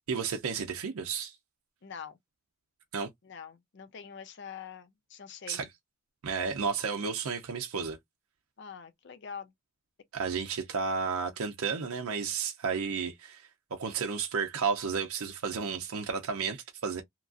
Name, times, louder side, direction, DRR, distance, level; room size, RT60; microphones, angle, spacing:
voice 1, 0.1-1.4 2.9-3.1 5.5-5.6 6.2-8.0 10.1-17.0, right 5 dB, 80° right, 0.5 m, -32 dB
voice 2, 1.8-2.2 3.2-5.7 8.6-9.5, left 7 dB, 55° left, 0.5 m, -45 dB
2.9 x 2.4 x 2.3 m
head